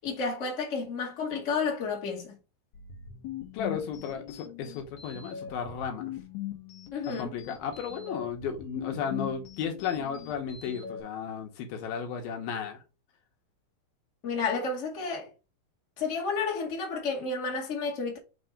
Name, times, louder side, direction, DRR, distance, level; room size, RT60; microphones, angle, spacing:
voice 1, 0.0-2.3 6.9-7.3 14.2-15.3 16.0-18.2, left 4 dB, 25° left, 1.8 m, -31 dB
sound 1, 2.7-11.0, left 10 dB, 60° left, 2.2 m, -41 dB
voice 2, 3.5-6.1 7.1-12.8, left 7 dB, 80° left, 2.7 m, -34 dB
5.9 x 3.4 x 5.3 m
omnidirectional pair, 4.3 m